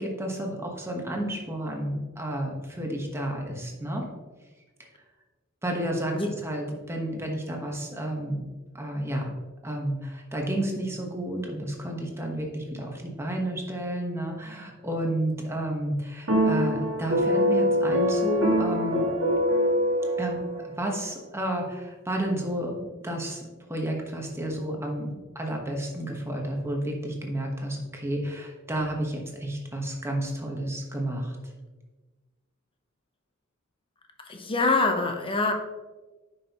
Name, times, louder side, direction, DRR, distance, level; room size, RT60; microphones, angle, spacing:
voice 1, 0.0-4.0 5.6-8.5 8.7-9.3 9.6-19.1 20.2-20.4 20.8-23.4 23.7-31.4, right 1 dB, 15° right, 0 dB, 1.2 m, -31 dB
sound 1, 16.3-20.7, equal, 80° right, 1.5 m, -24 dB
voice 2, 34.2-35.5, left 3 dB, 25° left, 4 dB, 0.8 m, -25 dB
9.6 x 5.5 x 2.9 m, 1.2 s
head